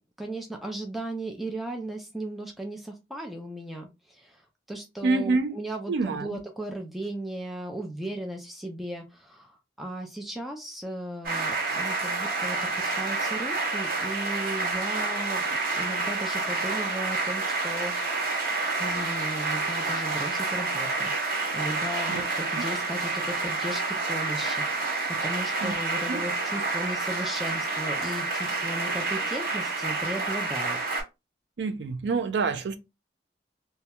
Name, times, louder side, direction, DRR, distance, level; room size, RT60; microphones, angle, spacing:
voice 1, 0.2-4.4 4.7-15.4 15.8-18.4 18.8-30.8, right 1 dB, ahead, 0.4 m, -36 dB
voice 2, 5.0-5.6 5.9-6.4 22.1-22.2 25.6-25.7 26.1-26.3 31.6-32.8, right 3 dB, 85° right, 0.4 m, -27 dB
sound 1, 11.2-31.0, right 3 dB, 55° right, 1.1 m, -29 dB
2.3 x 2.1 x 2.8 m
head